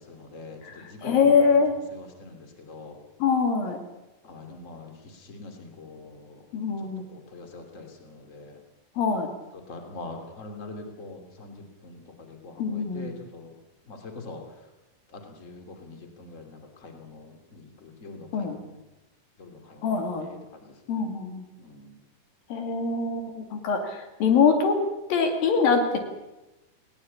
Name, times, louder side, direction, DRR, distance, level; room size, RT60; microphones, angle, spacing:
voice 1, 0.0-3.0 4.2-6.4 7.1-8.6 9.5-13.5 13.9-14.4 15.1-18.8 19.4-21.1 21.6-21.9, left 3 dB, 25° left, 4 dB, 2.7 m, -44 dB
voice 2, 1.0-1.7 3.2-3.8 6.5-7.0 9.0-9.3 12.6-13.1 18.3-18.6 19.8-20.3 20.9-21.4 22.5-24.8 25.1-26.0, left 5 dB, 85° left, 5 dB, 4.2 m, -23 dB
20.0 x 18.0 x 8.6 m, 1.0 s
omnidirectional pair, 4.0 m